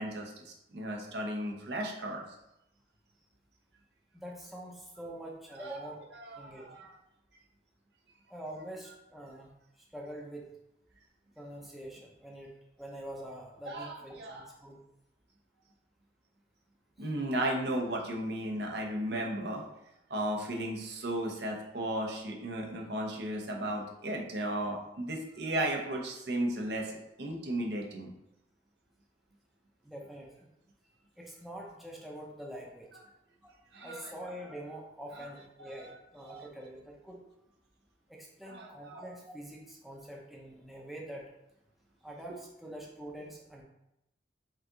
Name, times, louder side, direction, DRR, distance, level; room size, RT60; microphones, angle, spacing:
voice 1, 0.0-2.2 5.6-5.7 6.1-6.9 13.7-14.5 17.0-19.6 20.1-26.9 27.2-28.1 33.7-34.1 35.8-36.0 38.5-39.0, right 1 dB, 70° right, 0 dB, 0.9 m, -35 dB
voice 2, 4.1-6.0 6.4-6.7 8.3-9.5 9.8-10.5 11.4-12.5 12.8-14.8 17.0-17.1 29.8-30.5 31.2-32.9 33.4-33.5 33.8-37.2 38.1-41.2 42.0-43.6, right 1 dB, ahead, -2 dB, 0.6 m, -45 dB
4.8 x 2.9 x 3.8 m, 0.85 s
head